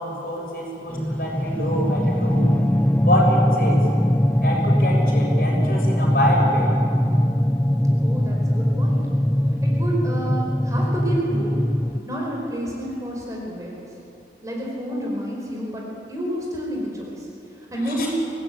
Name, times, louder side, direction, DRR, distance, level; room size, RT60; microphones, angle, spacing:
voice 1, 0.0-2.4 3.0-3.8 4.4-6.7 18.0-18.1, equal, 55° left, -2 dB, 6.9 m, -25 dB
sound 1, 0.9-12.0, equal, 10° left, 0.5 m, -21 dB
voice 2, 7.8-9.1 9.6-11.6 12.0-13.9 14.4-18.1, right 1 dB, 20° right, -2 dB, 4.6 m, -30 dB
25.5 x 17.5 x 9.0 m, 2.9 s
head